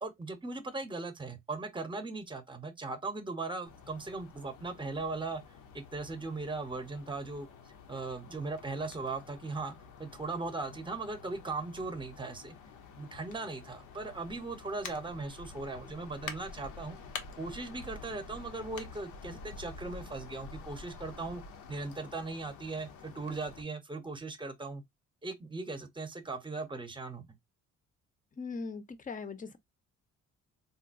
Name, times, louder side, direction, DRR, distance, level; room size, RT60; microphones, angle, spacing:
voice 1, 0.0-5.4 5.7-7.5 7.9-12.5 13.0-17.0 17.4-21.4 21.7-24.8 25.2-27.4, right 3 dB, 15° right, 0.8 m, -38 dB
sound 1, 3.7-23.6, left 4 dB, 75° left, 0.8 m, -48 dB
voice 2, 28.4-29.6, left 4 dB, 25° left, 0.6 m, -40 dB
3.8 x 2.1 x 2.5 m
cardioid pair, 90°, 30 cm